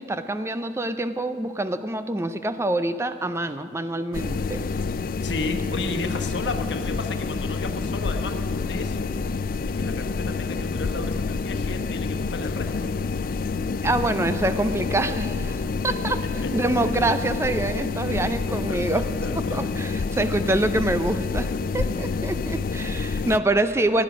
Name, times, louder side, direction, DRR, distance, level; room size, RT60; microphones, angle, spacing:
voice 1, 0.0-4.7 13.8-15.6 15.8-16.2 16.5-19.0 19.5-24.0, right 2 dB, 15° right, 11 dB, 0.4 m, -25 dB
sound 1, 4.1-23.4, left 4 dB, 50° left, 0.3 m, -28 dB
voice 2, 5.2-8.4 8.7-9.1 9.6-12.9 15.5-15.8 16.4-16.5 17.7-17.8 18.7-19.7, left 3 dB, 75° left, 6 dB, 1.2 m, -33 dB
16.0 x 10.5 x 6.1 m, 2.5 s
head